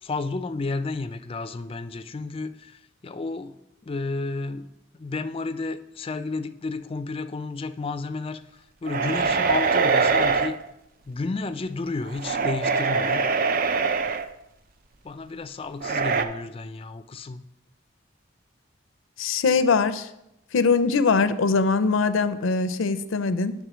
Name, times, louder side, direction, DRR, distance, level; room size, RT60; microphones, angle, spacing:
voice 1, 0.0-10.6 11.1-13.2 15.0-17.4, left 3 dB, 30° left, 10 dB, 0.4 m, -32 dB
sound 1, 8.9-10.5 12.1-14.3 15.8-16.2, right 5 dB, 45° right, 0.4 m, -23 dB
voice 2, 19.2-20.1 20.5-23.5, left 4 dB, 85° left, 13 dB, 0.5 m, -22 dB
9.2 x 3.6 x 6.1 m, 0.85 s
head